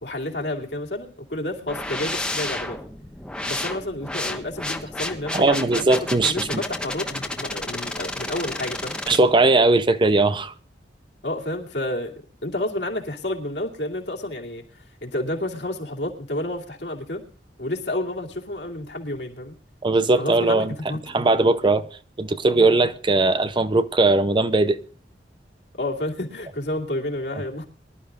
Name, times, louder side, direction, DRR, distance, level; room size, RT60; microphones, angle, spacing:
voice 1, 0.0-2.8 3.4-5.8 6.2-9.0 11.2-17.2 17.6-19.6 20.2-21.0 25.7-27.7, left 1 dB, 70° left, 2.5 m, -30 dB
sound 1, 1.7-9.2, left 1 dB, 5° left, 1.2 m, -31 dB
voice 2, 5.3-6.6 9.1-10.5 19.8-20.7 21.1-21.9 22.2-24.8, right 2 dB, 25° right, 0.6 m, -19 dB
24.0 x 12.0 x 2.4 m
head